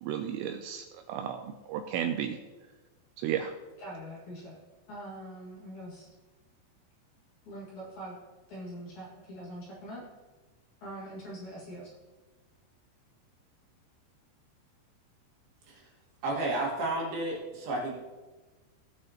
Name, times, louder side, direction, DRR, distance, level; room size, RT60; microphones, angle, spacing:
voice 1, 0.0-2.4 3.2-3.5, right 9 dB, 85° right, 6 dB, 2.6 m, -33 dB
voice 2, 3.8-4.6 4.9-6.1 7.5-8.2 8.5-10.1 10.8-12.0, right 1 dB, 50° left, -6 dB, 2.7 m, -43 dB
voice 3, 16.2-17.9, right 2 dB, 60° right, -3 dB, 3.3 m, -31 dB
18.0 x 6.3 x 2.9 m, 1.2 s
omnidirectional pair, 5.3 m